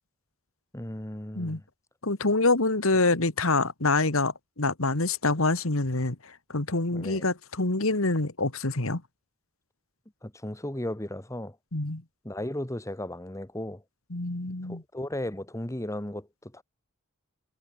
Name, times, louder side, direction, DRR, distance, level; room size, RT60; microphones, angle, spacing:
voice 1, 0.7-1.6 6.9-7.3 10.2-11.5 12.2-13.8 14.7-16.6, left 1 dB, 15° left, 1.7 m, -35 dB
voice 2, 2.0-9.0 11.7-12.0 14.1-14.8, left 2 dB, 70° left, 2.2 m, -26 dB
head